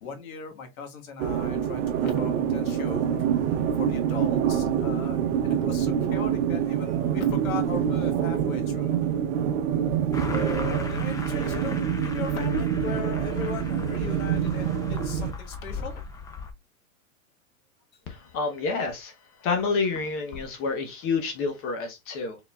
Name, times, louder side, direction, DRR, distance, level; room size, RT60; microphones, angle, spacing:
voice 1, 0.0-9.0 10.2-16.1, left 5 dB, 80° left, 1.5 m, -38 dB
sound 1, 1.2-15.3, right 8 dB, 65° right, 0.9 m, -26 dB
sound 2, 10.1-16.5, left 3 dB, 10° left, 0.4 m, -38 dB
voice 2, 18.1-19.1 19.4-22.4, left 4 dB, 30° left, 0.9 m, -28 dB
4.2 x 4.0 x 2.3 m
hypercardioid pair, 130°, 41 cm